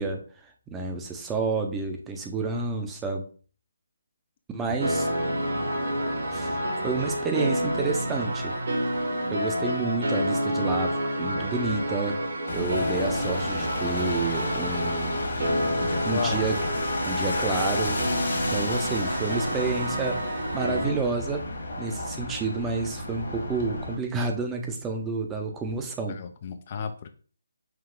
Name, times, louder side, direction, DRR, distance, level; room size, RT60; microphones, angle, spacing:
voice 1, 0.0-3.3 4.5-5.1 6.3-8.5 9.3-12.2 12.5-15.2 16.0-16.6 17.0-18.0 18.4-21.5 21.8-26.2, right 4 dB, 10° right, 3 dB, 0.6 m, -30 dB
sound 1, 4.8-20.9, equal, 55° right, 1.3 m, -29 dB
sound 2, 12.5-23.9, left 2 dB, 55° left, 1.5 m, -32 dB
voice 2, 15.8-16.4 26.1-27.1, left 6 dB, 35° left, 8 dB, 0.4 m, -34 dB
5.8 x 2.3 x 3.7 m, 0.41 s
figure-of-eight pair, 155°, 0 cm